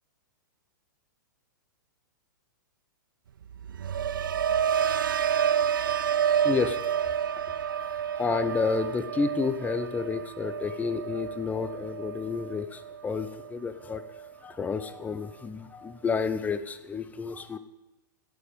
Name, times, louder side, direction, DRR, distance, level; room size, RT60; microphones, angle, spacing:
sound 1, 3.4-13.5 13.9-14.3, right 8 dB, 75° right, 0.4 m, -29 dB
voice 1, 6.1-6.8 8.1-14.0 14.4-17.6, left 5 dB, 15° left, 12 dB, 0.7 m, -30 dB
15.5 x 6.8 x 5.2 m, 1.0 s
hypercardioid pair, 110°, 11 cm